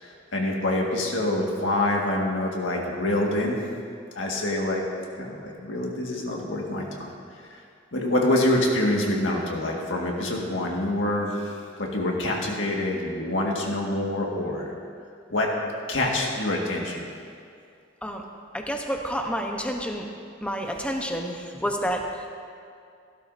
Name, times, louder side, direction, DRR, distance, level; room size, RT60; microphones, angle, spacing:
voice 1, 0.0-3.6 4.1-4.8 5.2-7.1 7.5-7.6 7.9-14.7 15.3-15.5 15.9-17.0, left 1 dB, 75° left, -1 dB, 1.8 m, -26 dB
voice 2, 18.5-20.0 20.4-22.3, equal, 5° left, 2 dB, 0.9 m, -29 dB
15.5 x 12.5 x 2.7 m, 2.3 s
head